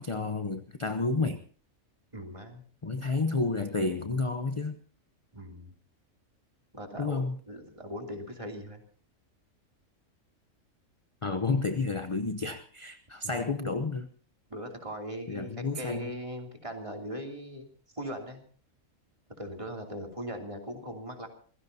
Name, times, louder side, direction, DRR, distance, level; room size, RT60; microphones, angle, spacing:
voice 1, 0.0-1.4 2.8-4.8 7.0-7.4 11.2-14.1 15.3-16.1, left 3 dB, 30° left, 8 dB, 0.7 m, -30 dB
voice 2, 2.1-2.6 5.3-5.7 6.7-8.8 13.2-13.4 14.5-17.7 17.9-18.4 19.4-21.3, equal, 25° right, 2 dB, 3.0 m, -39 dB
27.0 x 16.5 x 2.8 m, 0.41 s
omnidirectional pair, 1.4 m